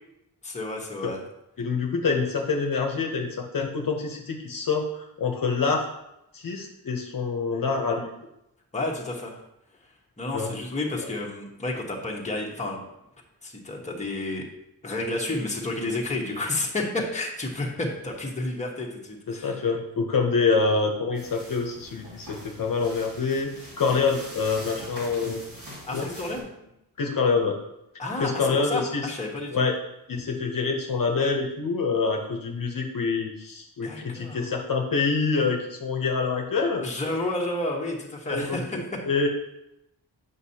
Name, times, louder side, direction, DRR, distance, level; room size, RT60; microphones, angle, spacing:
voice 1, 0.4-1.2 8.7-9.4 10.2-12.8 13.4-14.5 14.8-19.6 25.8-26.4 28.0-29.6 33.8-34.4 36.8-38.8, left 2 dB, 20° left, -2 dB, 1.1 m, -31 dB
voice 2, 1.6-5.9 6.3-8.1 10.3-10.5 19.3-25.5 25.9-26.1 27.0-27.6 28.2-29.1 29.5-29.7 30.1-36.8 38.3-39.3, left 4 dB, 55° left, 2 dB, 0.9 m, -26 dB
sound 1, 21.1-26.4, equal, 55° right, 2.4 m, -43 dB
8.1 x 5.4 x 2.8 m, 0.86 s
wide cardioid pair, 140°, 39 cm